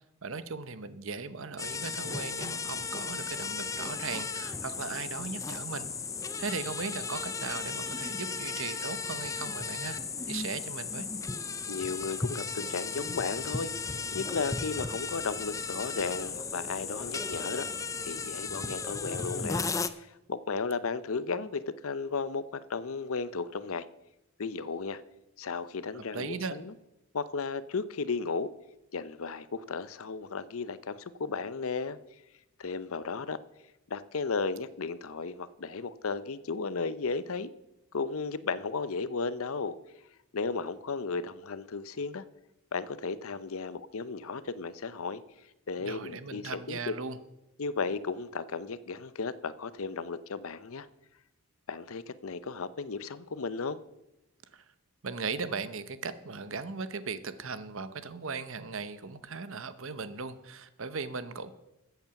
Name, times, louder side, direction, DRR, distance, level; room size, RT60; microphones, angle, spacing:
voice 1, 0.2-5.9 6.4-10.0 10.3-11.1 25.9-26.6 45.8-47.2 54.5-54.6 55.0-61.5, right 4 dB, 60° right, 13 dB, 0.8 m, -38 dB
sound 1, 1.6-19.9, left 4 dB, 15° left, 0.4 m, -35 dB
voice 2, 11.7-13.7 14.1-17.7 18.0-19.7 20.0-23.9 24.4-25.0 25.4-26.7 27.1-28.5 28.9-32.0 32.6-33.4 33.9-37.5 37.9-39.8 40.3-42.2 42.7-45.2 45.7-46.9 47.6-50.9 51.7-53.8, left 4 dB, 65° left, 16 dB, 0.6 m, -34 dB
14.0 x 8.1 x 5.9 m, 0.92 s
head